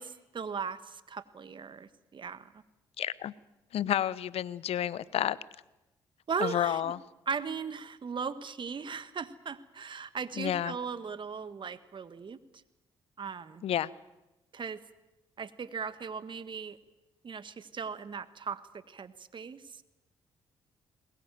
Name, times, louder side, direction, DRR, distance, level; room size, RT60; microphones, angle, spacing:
voice 1, 0.0-2.5 6.3-6.9 7.3-12.4 13.2-13.6 14.5-14.8 15.4-16.8 17.2-18.6 18.9-19.8, right 6 dB, 50° right, 12 dB, 1.7 m, -38 dB
voice 2, 3.0-3.3 3.7-5.4 6.4-7.0 10.4-10.8 13.6-13.9, left 11 dB, 70° left, 20 dB, 0.8 m, -30 dB
21.0 x 21.0 x 9.3 m, 0.97 s
hypercardioid pair, 50°, 11 cm